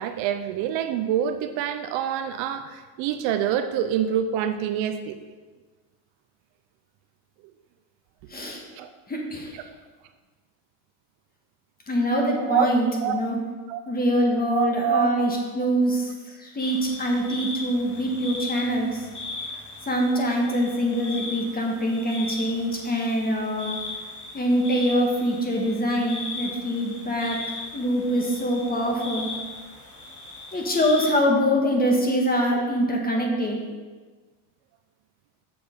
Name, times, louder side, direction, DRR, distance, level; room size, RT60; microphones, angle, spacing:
voice 1, 0.0-5.2 8.8-8.9 12.4-12.7 13.0-13.2 13.7-13.8 14.5-15.1, right 9 dB, 65° right, 8 dB, 0.7 m, -26 dB
voice 2, 8.3-8.6 9.1-9.6 11.9-13.4 13.9-19.1 19.9-23.8 24.3-27.4 27.7-29.3 30.5-33.7, equal, 20° left, 0 dB, 1.5 m, -24 dB
sound 1, 16.6-31.1, left 3 dB, 35° left, 2.3 m, -38 dB
6.9 x 6.9 x 5.2 m, 1.4 s
cardioid pair, 135°, 49 cm